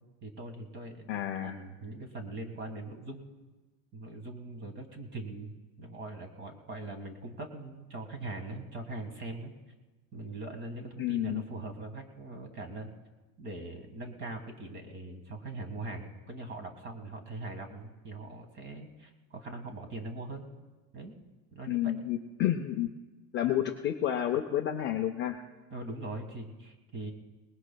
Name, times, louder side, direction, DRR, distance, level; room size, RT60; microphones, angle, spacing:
voice 1, 0.2-3.3 3.9-9.5 10.1-12.9 13.4-20.5 20.9-21.1 21.5-21.9 25.7-27.1, right 2 dB, 25° right, 6 dB, 1.6 m, -41 dB
voice 2, 1.1-1.6 11.0-11.4 21.7-22.9 23.3-25.4, left 11 dB, 25° left, 4 dB, 0.4 m, -30 dB
22.5 x 20.0 x 2.2 m, 1.2 s
cardioid pair, 165°, 43 cm